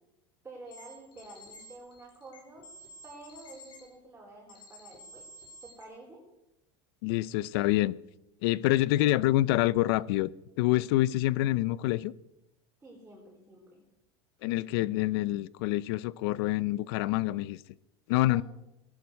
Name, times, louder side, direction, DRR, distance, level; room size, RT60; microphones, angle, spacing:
voice 1, 0.4-2.7 3.0-5.3 5.6-6.2 10.7-11.0 12.8-13.8 18.2-18.4, right 2 dB, 15° right, 4.7 m, -49 dB
sound 1, 0.7-3.8 4.5-5.8, left 1 dB, 40° left, 5.2 m, -51 dB
voice 2, 7.0-7.9 8.4-10.3 10.6-12.1 14.4-17.6 18.1-18.4, left 16 dB, 75° left, 0.7 m, -26 dB
18.0 x 11.5 x 6.5 m
supercardioid pair, 135°, 13 cm